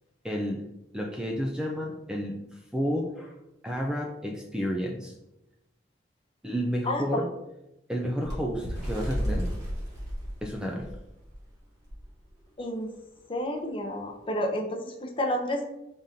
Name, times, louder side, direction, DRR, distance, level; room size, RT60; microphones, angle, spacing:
voice 1, 0.2-0.7 0.9-3.4 3.6-5.1 6.4-7.3 7.9-9.5 10.4-10.9, equal, 5° right, -1 dB, 0.3 m, -31 dB
voice 2, 6.9-7.2 12.6-12.9 13.3-15.7, left 1 dB, 30° left, 2 dB, 0.6 m, -30 dB
Bird, 8.2-11.4 11.9-12.0 12.3-12.6 13.3-13.4, equal, 20° right, 1.4 m, -33 dB
5.0 x 3.7 x 2.7 m, 0.91 s
head